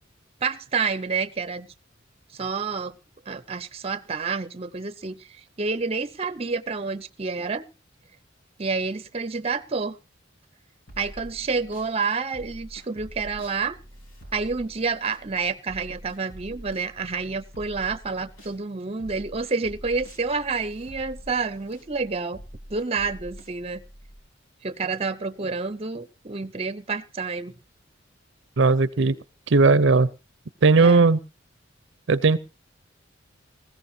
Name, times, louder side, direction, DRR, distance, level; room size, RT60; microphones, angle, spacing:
voice 1, 0.4-1.7 2.3-3.0 3.3-5.3 5.6-7.6 8.6-10.0 11.0-13.8 14.3-22.4 22.7-23.8 24.6-27.5 30.8-31.1, right 4 dB, 30° right, 16 dB, 0.7 m, -29 dB
sound 1, 10.9-11.9 12.3-18.6 19.0-24.2, equal, 75° left, 3.8 m, -45 dB
voice 2, 28.6-29.2 29.5-30.1 30.6-31.2 32.1-32.4, right 3 dB, 65° right, 17 dB, 0.6 m, -17 dB
20.0 x 15.5 x 2.7 m, 0.30 s
head